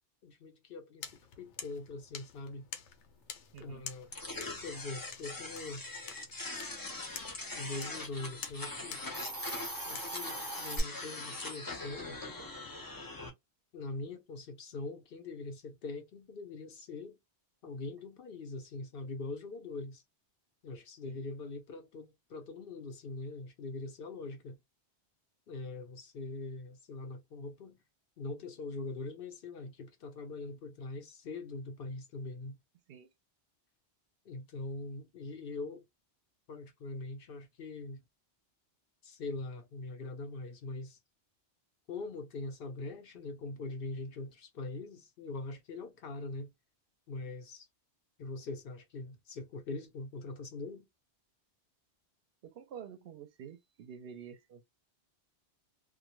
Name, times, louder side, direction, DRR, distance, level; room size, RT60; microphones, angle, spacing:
voice 1, 0.2-2.7 3.6-5.9 7.5-9.1 9.8-12.2 13.7-17.2 17.6-20.0 20.6-24.6 25.5-27.8 28.2-32.6 34.3-35.8 36.5-38.0 39.0-41.0 41.9-46.5 47.1-47.7 48.2-50.9, left 3 dB, 60° left, 0.7 m, -42 dB
sound 1, 1.0-10.1, left 7 dB, 85° left, 0.9 m, -49 dB
voice 2, 3.5-3.9 10.3-10.4 12.4-12.5 21.0-21.2 32.9-33.1 52.4-54.7, right 7 dB, 65° right, 0.7 m, -49 dB
sound 2, 4.1-13.3, left 2 dB, 25° left, 0.5 m, -42 dB
Hiss, 9.0-10.8, right 1 dB, 20° right, 0.8 m, -39 dB
2.1 x 2.1 x 2.9 m
omnidirectional pair, 1.1 m